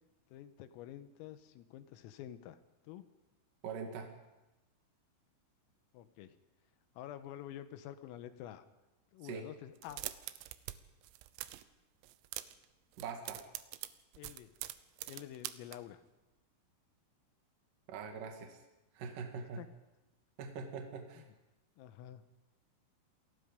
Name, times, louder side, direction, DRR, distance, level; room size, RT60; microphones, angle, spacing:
voice 1, 0.3-2.6 2.9-3.1 5.9-6.3 7.0-8.7 9.1-10.0 14.2-14.5 15.1-16.0 19.6-19.7 21.2-21.3 21.8-22.2, left 12 dB, 90° left, 11 dB, 3.7 m, -48 dB
voice 2, 3.6-4.1 9.2-9.5 13.0-13.4 17.9-18.6 18.9-19.6 20.4-21.3, right 5 dB, 55° right, 3 dB, 2.8 m, -43 dB
sound 1, 9.8-10.8 11.0-11.7 12.0-12.7 12.9-15.8, right 16 dB, 85° right, 3.5 m, -44 dB
28.5 x 21.0 x 5.2 m, 1.0 s
omnidirectional pair, 5.9 m